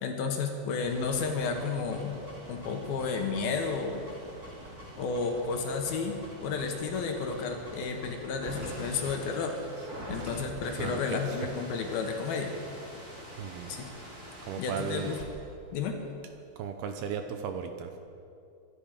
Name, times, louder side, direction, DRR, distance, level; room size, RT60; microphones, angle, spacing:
voice 1, 0.0-2.2 2.5-4.0 5.0-9.5 10.1-12.5 13.7-13.8 14.6-15.2 15.7-16.0, left 5 dB, 70° left, 3 dB, 2.8 m, -32 dB
sound 1, 0.7-15.2, equal, 25° right, 2.7 m, -45 dB
voice 2, 10.8-11.5 13.4-13.7 14.5-15.2 16.6-18.0, right 7 dB, 75° right, 6 dB, 2.5 m, -36 dB
25.0 x 11.5 x 5.1 m, 2.5 s
omnidirectional pair, 5.0 m